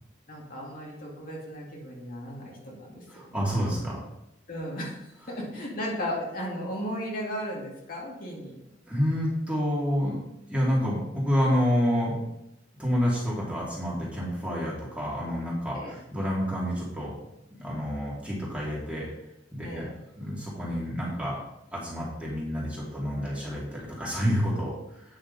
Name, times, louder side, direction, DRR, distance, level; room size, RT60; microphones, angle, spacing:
voice 1, 0.3-3.4 4.5-5.0 5.3-8.6 15.7-16.0 19.6-20.0, equal, 50° left, -3 dB, 2.3 m, -35 dB
voice 2, 3.1-4.0 8.9-10.2 10.5-12.2 12.8-17.1 17.6-19.1 19.5-19.9 20.2-21.4 21.7-25.0, equal, 5° right, -6 dB, 2.8 m, -28 dB
9.0 x 6.8 x 4.1 m, 0.84 s
head